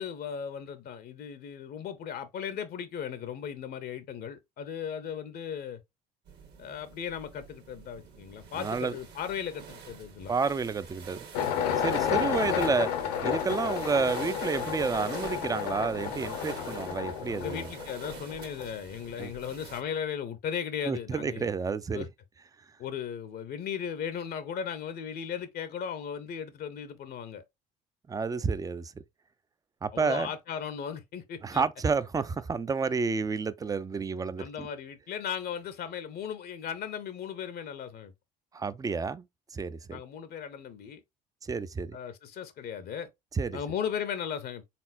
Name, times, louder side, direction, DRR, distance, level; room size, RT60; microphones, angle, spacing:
voice 1, 0.0-5.8 6.6-10.3 17.3-21.5 21.9-22.1 22.8-27.4 29.9-31.6 34.4-38.1 39.9-41.0 41.9-43.1 43.5-44.7, left 8 dB, 50° left, 0.7 m, -37 dB
sound 1, 6.3-19.8, right 6 dB, 55° right, 1.4 m, -47 dB
voice 2, 8.6-9.0 10.3-11.2 11.8-12.9 13.2-17.7 19.2-19.3 20.9-22.1 28.1-28.9 29.8-30.3 31.4-34.7 38.5-39.3 39.5-40.0 41.4-42.0 43.3-43.6, right 5 dB, 15° right, 0.4 m, -30 dB
sound 2, 11.3-18.7, left 8 dB, 75° left, 0.9 m, -31 dB
4.2 x 3.6 x 2.5 m
hypercardioid pair, 65°, 21 cm